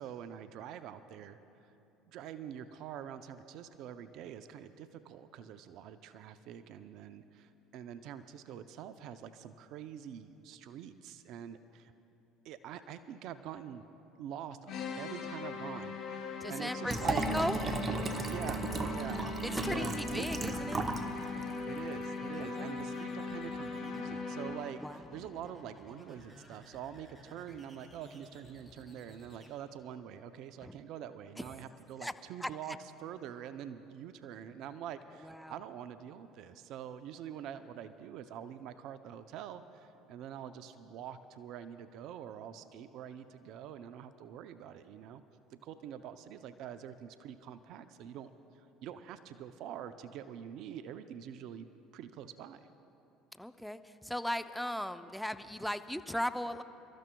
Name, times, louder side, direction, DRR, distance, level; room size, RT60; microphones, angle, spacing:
voice 1, 0.0-1.4 2.1-11.9 12.4-13.8 14.2-17.3 18.3-19.3 19.7-20.3 21.7-45.2 45.6-48.3 48.8-51.7 51.9-52.7, right 9 dB, 60° right, 11 dB, 0.5 m, -45 dB
sound 1, 14.7-24.8, left 3 dB, 60° left, 3.1 m, -39 dB
voice 2, 16.4-17.6 19.4-20.8 22.4-22.7 24.8-25.0 30.6-30.8 31.4-31.5 32.0-32.1 32.4-32.5 35.2-35.6 53.4-56.6, equal, ahead, 10 dB, 0.6 m, -37 dB
Liquid, 16.9-21.1 21.4-21.5, right 3 dB, 35° right, 1.0 m, -35 dB
sound 2, 19.0-29.5, left 1 dB, 15° right, 3.9 m, -56 dB
29.0 x 13.5 x 2.3 m, 2.7 s
hypercardioid pair, 70°, 0 cm